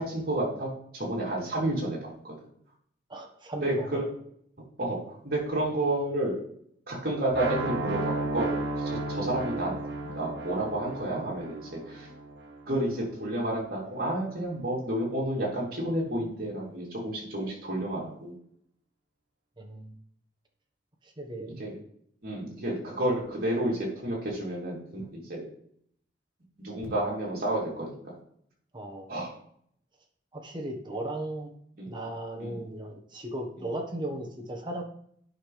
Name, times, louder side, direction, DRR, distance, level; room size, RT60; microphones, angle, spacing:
voice 1, 0.0-2.3 3.6-4.0 4.8-6.4 6.9-8.5 8.7-9.7 10.1-12.1 12.7-18.3 21.5-21.7 22.2-25.4 26.6-27.9 29.1-29.3 31.8-31.9 32.4-32.6, right 1 dB, 55° right, -4 dB, 3.3 m, -30 dB
voice 2, 3.1-4.0 19.6-20.0 21.2-21.5 28.7-29.1 30.3-31.5 31.8-34.8, right 1 dB, 25° right, 2 dB, 1.4 m, -36 dB
sound 1, 7.3-13.3, right 2 dB, 80° right, 1.4 m, -34 dB
9.9 x 5.8 x 3.4 m, 0.67 s
head